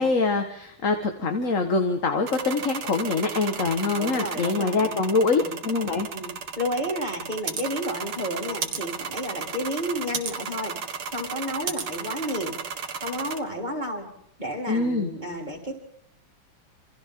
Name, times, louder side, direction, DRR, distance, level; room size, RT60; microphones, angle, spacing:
voice 1, 0.0-6.1 14.7-15.1, left 3 dB, 40° left, 6 dB, 1.9 m, -24 dB
sound 1, 2.3-13.4, right 6 dB, 80° right, 2.6 m, -34 dB
voice 2, 3.9-5.5 6.1-6.3 6.6-10.7 11.1-12.6 13.0-14.1 14.4-15.7, equal, 20° right, 0 dB, 4.4 m, -31 dB
28.0 x 27.5 x 3.9 m, 0.72 s
omnidirectional pair, 2.3 m